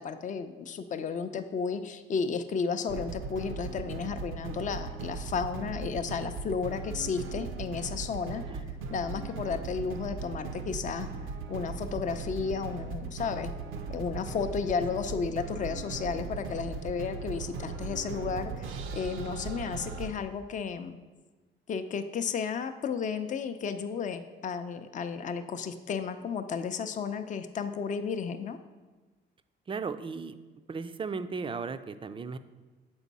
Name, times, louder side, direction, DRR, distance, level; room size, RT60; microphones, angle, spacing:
voice 1, 0.0-8.4 8.9-11.1 11.5-13.5 13.9-21.0 21.7-28.6, left 6 dB, 40° left, 9 dB, 0.5 m, -33 dB
sound 1, 2.9-20.1, right 5 dB, 85° right, 0.5 m, -38 dB
voice 2, 29.7-30.4 30.7-32.4, right 5 dB, 25° right, 11 dB, 0.3 m, -36 dB
7.1 x 4.5 x 4.1 m, 1.3 s
cardioid pair, 90°, 20 cm